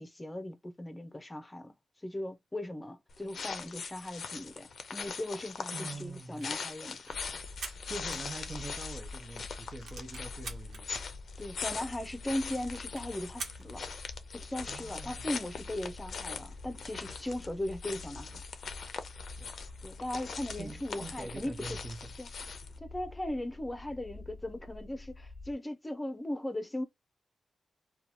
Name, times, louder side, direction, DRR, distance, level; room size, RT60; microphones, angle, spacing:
voice 1, 0.0-1.7 2.0-7.0 11.4-13.9 14.3-18.4 19.8-21.8 22.2-22.3 22.8-26.8, left 1 dB, 15° left, 0.7 m, -38 dB
sound 1, 3.1-22.8, left 5 dB, 65° left, 0.6 m, -42 dB
voice 2, 5.7-6.5 7.9-10.9 14.7-15.3 19.4-19.7 20.5-22.1, right 3 dB, 30° right, 0.6 m, -44 dB
sound 2, 6.2-8.9 9.2-9.3 9.6-10.8 11.4-11.5 11.7-11.8 12.1-12.2 12.5-14.2, right 4 dB, 85° right, 1.1 m, -46 dB
sound 3, 7.1-25.5, left 3 dB, 70° right, 1.1 m, -48 dB
2.9 x 2.3 x 4.2 m
wide cardioid pair, 120°, 0 cm